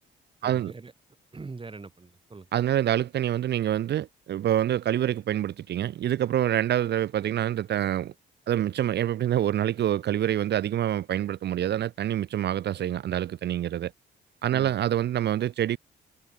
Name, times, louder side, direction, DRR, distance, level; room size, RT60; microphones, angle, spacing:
voice 1, 0.4-0.9 1.3-2.5 14.5-14.9, right 4 dB, 25° right, 4.2 m, -42 dB
voice 2, 2.5-8.1 8.5-13.9 14.4-15.8, right 11 dB, 60° right, 0.6 m, -26 dB
cardioid pair, 90°, 20 cm